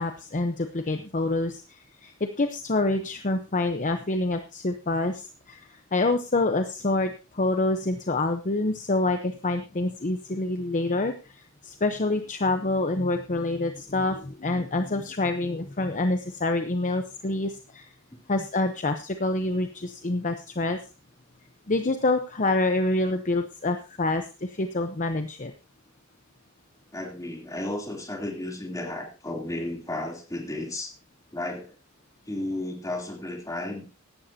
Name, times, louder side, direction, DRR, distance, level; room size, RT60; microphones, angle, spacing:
voice 1, 0.0-11.4 11.6-17.9 18.3-20.8 21.7-25.5, left 2 dB, 35° left, 7 dB, 0.9 m, -27 dB
voice 2, 26.9-30.9 31.3-31.7 32.2-33.9, left 1 dB, 15° left, 0 dB, 3.2 m, -33 dB
16.5 x 12.0 x 2.8 m, 0.32 s
head